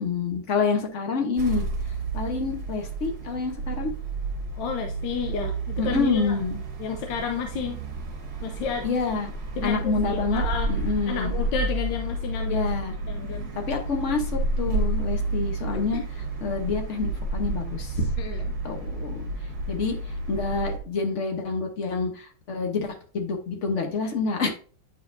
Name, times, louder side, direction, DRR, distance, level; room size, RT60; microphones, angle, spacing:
voice 1, 0.0-1.6 2.1-3.9 5.8-6.6 8.8-9.3 9.6-11.4 12.5-12.9 13.5-16.0 16.4-18.1 18.6-19.2 19.7-20.0 20.3-24.5, left 4 dB, 50° left, 3 dB, 1.0 m, -27 dB
sound 1, 1.4-20.8, right 2 dB, 55° right, 1.6 m, -30 dB
voice 2, 4.5-6.4 6.8-7.8 8.4-8.9 9.6-10.7 11.1-12.7 13.1-13.4 15.7-16.0 18.2-18.5, left 6 dB, 70° left, 4 dB, 1.2 m, -31 dB
9.6 x 4.1 x 2.5 m, 0.40 s
omnidirectional pair, 2.3 m